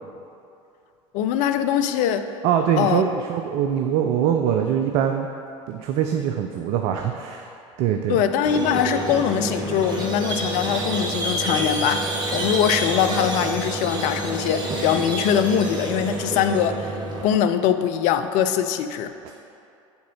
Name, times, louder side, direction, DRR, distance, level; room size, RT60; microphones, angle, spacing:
voice 1, 1.1-2.3 2.8-3.0 8.1-17.0 17.2-19.1, left 8 dB, 50° left, 9 dB, 0.4 m, -22 dB
voice 2, 2.4-5.3 5.7-7.5 7.8-8.2 19.2-19.3, right 9 dB, 50° right, 5 dB, 0.4 m, -23 dB
Squeak, 8.4-17.2, right 1 dB, 25° right, 1.3 m, -28 dB
7.0 x 3.8 x 5.4 m, 2.6 s
figure-of-eight pair, 70°, 17 cm